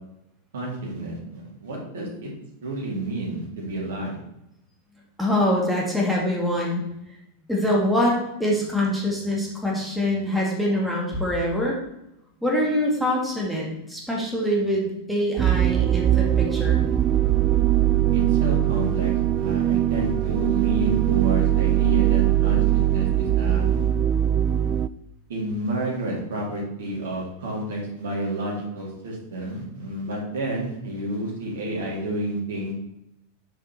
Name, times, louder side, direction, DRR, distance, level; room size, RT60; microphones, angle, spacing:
voice 1, 0.5-2.3 2.6-4.2 18.1-23.9 25.3-32.7, right 1 dB, 60° right, -2 dB, 2.5 m, -30 dB
voice 2, 5.2-6.8 7.5-11.8 12.4-16.8, left 1 dB, ahead, -4 dB, 2.3 m, -24 dB
sound 1, 15.4-24.9, right 12 dB, 30° right, 0.3 m, -21 dB
7.6 x 5.0 x 4.4 m, 0.85 s
figure-of-eight pair, 90°, 0 cm